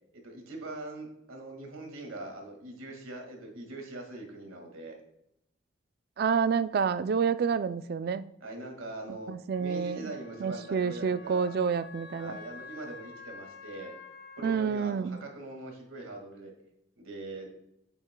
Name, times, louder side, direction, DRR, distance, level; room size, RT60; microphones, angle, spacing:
voice 1, 0.1-5.0 8.4-9.3 9.6-11.6 12.2-13.9 14.4-16.5 17.0-17.5, right 2 dB, 90° right, 1.9 m, -42 dB
voice 2, 6.2-8.3 9.3-10.1 10.4-12.3 14.4-15.2, right 6 dB, 50° right, 0.3 m, -28 dB
Wind instrument woodwind instrument, 9.5-14.6, left 5 dB, 55° left, 0.9 m, -49 dB
8.7 x 8.2 x 2.2 m
head